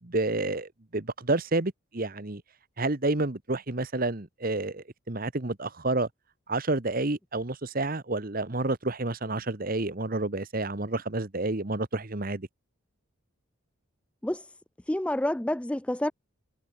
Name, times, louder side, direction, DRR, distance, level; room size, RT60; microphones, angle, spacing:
voice 1, 0.0-2.4 2.8-6.1 6.5-12.5, right 2 dB, 40° right, 1.2 m, -29 dB
voice 2, 14.9-16.1, left 1 dB, 5° left, 0.3 m, -28 dB
head